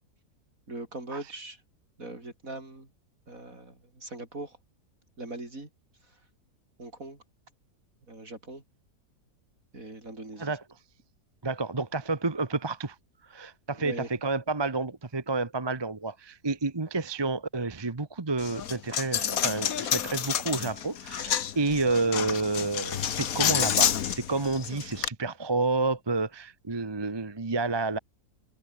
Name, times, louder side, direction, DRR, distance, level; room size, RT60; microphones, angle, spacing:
voice 1, 0.7-1.6 2.0-2.9 3.3-4.6 5.2-5.7 6.8-7.2 8.1-8.6 9.7-10.6 13.8-14.1, right 2 dB, 60° right, 6.4 m, -40 dB
voice 2, 11.4-13.0 13.2-28.0, right 3 dB, 20° right, 0.9 m, -30 dB
Coin (dropping), 18.4-25.1, left 9 dB, 65° left, 1.4 m, -29 dB
omnidirectional pair, 1.7 m